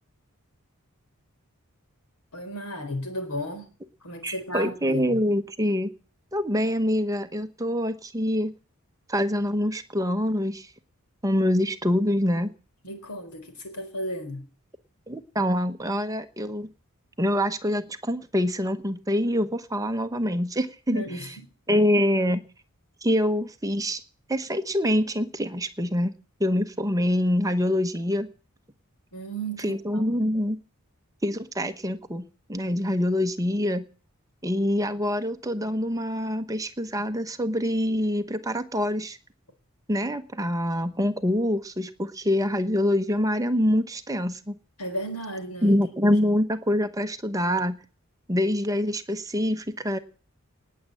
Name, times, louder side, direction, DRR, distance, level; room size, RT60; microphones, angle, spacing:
voice 1, 2.3-3.7 4.0-5.2 12.8-14.4 20.9-21.3 29.1-30.0 44.8-45.8 46.1-46.2, equal, 90° left, 4.1 m, -34 dB
voice 2, 4.2-5.9 6.3-8.5 9.1-10.7 11.2-12.5 15.1-16.7 17.2-21.0 21.7-22.4 23.0-24.0 24.3-26.1 26.4-28.3 29.6-30.6 31.2-33.8 34.4-39.2 39.9-44.5 45.6-47.8 48.3-50.0, left 1 dB, 15° right, 1.1 m, -25 dB
19.0 x 7.6 x 8.5 m
head